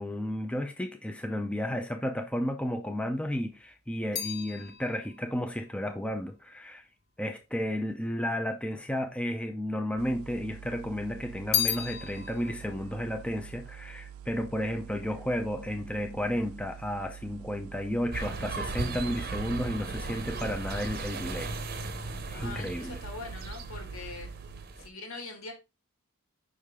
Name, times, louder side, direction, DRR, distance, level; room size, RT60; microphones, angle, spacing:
voice 1, 0.0-6.8 7.2-21.5 22.3-23.0, equal, 5° left, 0.5 m, -33 dB
sound 1, 3.2-7.6 8.4-9.2 9.5-10.6 10.9-14.5 14.7-15.3, left 9 dB, 45° left, 1.1 m, -36 dB
sound 2, 10.0-24.7, right 8 dB, 75° right, 0.3 m, -47 dB
sound 3, 18.1-24.9, right 3 dB, 45° right, 0.7 m, -37 dB
voice 2, 22.3-24.3 24.8-25.5, left 3 dB, 80° left, 2.0 m, -42 dB
5.5 x 5.0 x 3.6 m
head